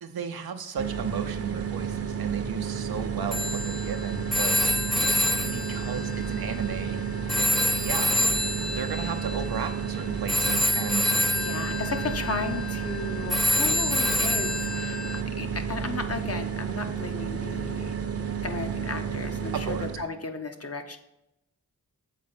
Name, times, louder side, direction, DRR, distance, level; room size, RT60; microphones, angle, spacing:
voice 1, 0.0-4.6 5.5-7.0 7.8-8.2 8.7-11.1 19.5-19.9, right 6 dB, 85° right, 6 dB, 0.7 m, -34 dB
sound 1, 0.8-20.1, right 7 dB, 40° right, 0.7 m, -31 dB
Telephone, 3.3-6.9 7.3-15.2, left 1 dB, ahead, 0.3 m, -28 dB
voice 2, 11.3-17.9 18.4-21.0, left 4 dB, 40° left, 6 dB, 0.9 m, -35 dB
7.2 x 4.3 x 4.2 m, 0.89 s
cardioid pair, 50°, 36 cm